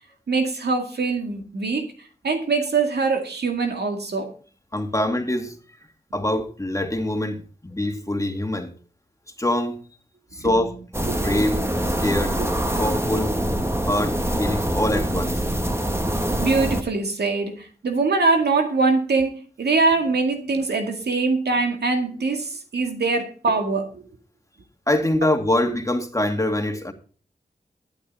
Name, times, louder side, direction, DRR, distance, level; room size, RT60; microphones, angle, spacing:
voice 1, 0.3-1.9 2.2-4.3 10.4-10.6 11.1-11.5 12.4-12.5 16.4-24.0, right 4 dB, 85° right, 2.1 m, -23 dB
voice 2, 4.7-5.6 6.1-8.7 9.4-9.8 10.3-10.8 11.1-11.6 12.0-12.4 12.8-13.4 13.8-15.4 24.9-26.9, left 1 dB, 20° left, 2.3 m, -24 dB
sound 1, 10.9-16.8, right 1 dB, 15° right, 1.9 m, -24 dB
12.0 x 10.5 x 4.2 m
cardioid pair, 40°, 17 cm